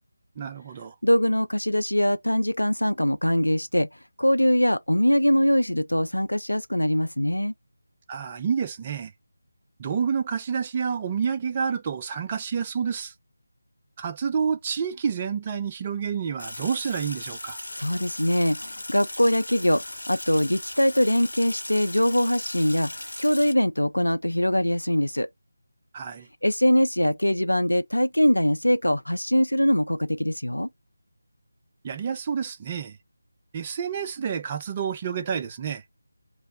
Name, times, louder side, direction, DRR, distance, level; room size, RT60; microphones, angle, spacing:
voice 1, 0.4-0.9 8.1-9.1 9.8-13.1 14.0-17.6 25.9-26.3 31.8-33.0 33.5-35.8, right 6 dB, 20° right, 0.4 m, -29 dB
voice 2, 1.0-3.9 4.2-7.5 17.8-22.9 23.2-25.3 26.4-30.7, equal, 80° left, 0.4 m, -22 dB
Sink (filling or washing), 16.4-23.5, left 1 dB, 65° left, 0.9 m, -38 dB
3.1 x 2.1 x 4.1 m
figure-of-eight pair, 160°, 0 cm